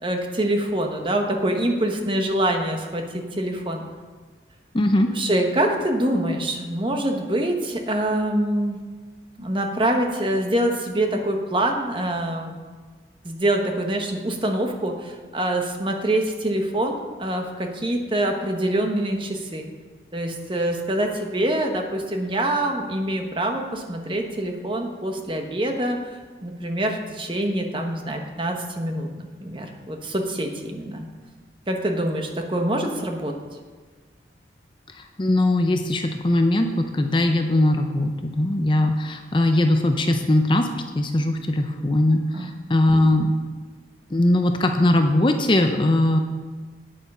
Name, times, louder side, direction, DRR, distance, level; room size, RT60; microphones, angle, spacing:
voice 1, 0.0-3.9 5.1-8.8 9.4-12.6 13.2-19.7 20.1-26.0 26.4-31.1 31.7-33.4 42.3-42.5, right 1 dB, 25° right, 3 dB, 1.1 m, -25 dB
voice 2, 4.7-5.1 34.9-40.7 40.9-43.3 44.1-46.2, left 1 dB, 25° left, 5 dB, 0.6 m, -20 dB
9.2 x 8.7 x 5.5 m, 1.4 s
head